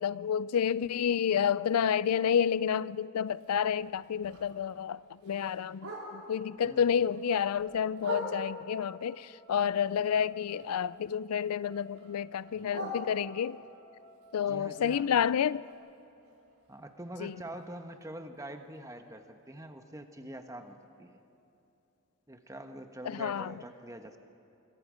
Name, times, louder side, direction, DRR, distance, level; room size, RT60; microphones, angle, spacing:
voice 1, 0.0-13.6 14.3-15.7 17.2-17.3 23.0-23.5, left 8 dB, 90° left, 0.4 m, -30 dB
Bark, 3.3-6.5 6.9-8.8 9.2-11.1 11.3-13.7 14.1-18.0 18.3-18.4 18.7-19.1 19.6-19.7 20.0-20.1 20.6-20.7, equal, 70° right, 5.3 m, -45 dB
sound 1, 7.1-15.7, right 1 dB, 90° right, 1.6 m, -60 dB
voice 2, 14.4-15.1 16.7-21.2 22.3-24.2, right 1 dB, 15° right, 1.2 m, -45 dB
26.0 x 24.0 x 5.1 m
head